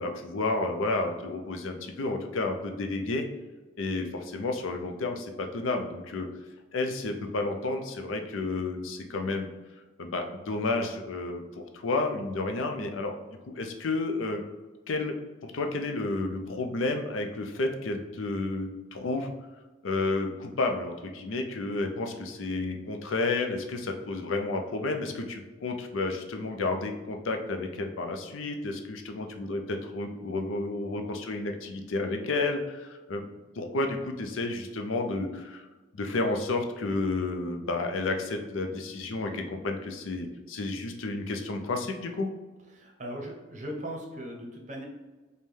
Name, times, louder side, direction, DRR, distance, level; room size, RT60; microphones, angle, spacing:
voice 1, 0.0-3.3 3.8-6.3 6.7-9.5 10.0-13.1 13.4-14.4 14.9-15.2 15.4-19.3 19.8-33.2 33.6-35.7 35.9-42.3, left 2 dB, 85° left, 4 dB, 0.5 m, -31 dB
voice 2, 42.7-44.9, equal, 40° right, 0 dB, 0.7 m, -38 dB
5.3 x 2.2 x 3.2 m, 1.2 s
head